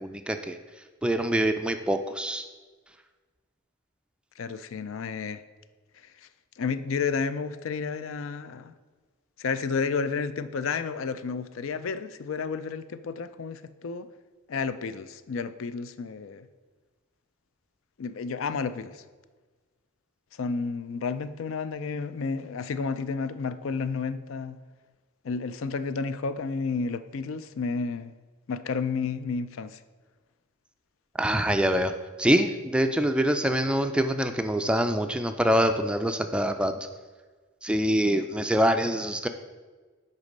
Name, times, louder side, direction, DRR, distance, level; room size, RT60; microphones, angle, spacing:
voice 1, 0.0-0.6 1.0-2.4 31.2-31.9 32.2-36.7 37.6-39.3, equal, 5° right, 7 dB, 0.3 m, -25 dB
voice 2, 4.4-5.4 6.6-8.7 9.4-14.1 14.5-16.5 18.0-19.0 20.4-24.6 25.2-28.1 28.5-29.8, left 5 dB, 70° left, 13 dB, 0.4 m, -31 dB
8.2 x 5.3 x 5.2 m, 1.4 s
head